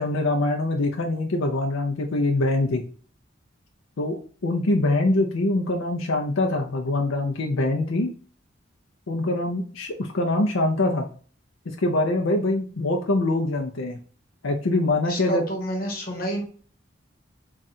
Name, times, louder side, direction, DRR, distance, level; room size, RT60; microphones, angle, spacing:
voice 1, 0.0-2.8 4.0-8.1 9.1-11.1 11.7-14.0 14.4-15.4, left 2 dB, 85° left, 1 dB, 0.6 m, -24 dB
voice 2, 15.0-16.4, right 1 dB, 45° left, 1 dB, 1.2 m, -29 dB
3.7 x 2.4 x 4.1 m, 0.42 s
head